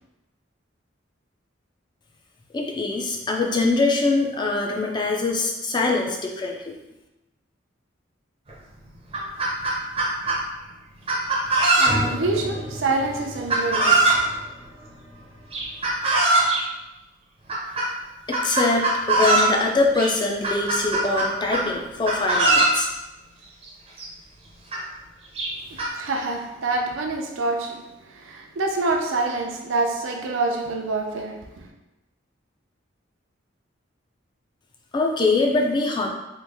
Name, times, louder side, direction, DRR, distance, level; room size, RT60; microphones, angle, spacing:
voice 1, 2.5-6.7 18.3-22.9 34.9-36.1, left 3 dB, 25° left, 1 dB, 0.4 m, -23 dB
Chicken rooster, 8.5-8.6 8.9-10.4 11.1-12.2 13.5-14.2 15.5-16.6 17.5-17.9 18.3-19.5 19.9-20.1 20.4-21.7 22.0-22.8 23.7-23.8 24.0-24.1 24.7-24.8 25.4-25.9, right 2 dB, 30° right, 0.6 m, -21 dB
sound 1, 11.8-16.5, equal, 55° left, 1.5 m, -35 dB
voice 2, 11.8-14.2 25.7-31.7, right 3 dB, 85° right, 2 dB, 0.5 m, -27 dB
3.1 x 2.5 x 3.4 m, 0.97 s
head